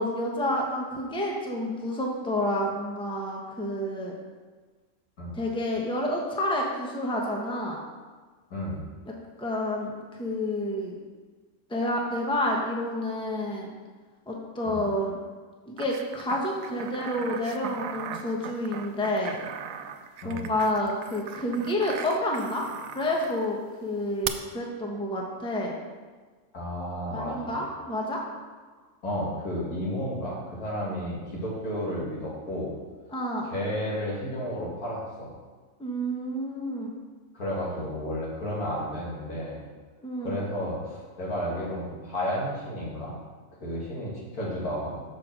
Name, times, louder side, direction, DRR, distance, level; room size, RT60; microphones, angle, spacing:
voice 1, 0.0-4.1 5.3-7.8 9.4-9.9 10.2-10.9 11.7-13.7 14.3-15.2 15.7-19.4 20.2-22.6 22.9-25.7 27.1-28.2 33.1-33.5 35.8-36.9 40.0-40.3, left 1 dB, 5° left, -1 dB, 0.9 m, -29 dB
voice 2, 8.5-8.9 14.7-14.8 20.2-20.5 26.5-27.6 29.0-32.7 33.4-35.3 37.3-39.6 40.2-43.2 43.6-45.0, equal, 85° left, -5 dB, 2.5 m, -32 dB
sound 1, 15.8-23.5 24.2-24.3, right 9 dB, 70° right, 0.9 m, -38 dB
6.7 x 5.1 x 6.1 m, 1.4 s
omnidirectional pair, 1.5 m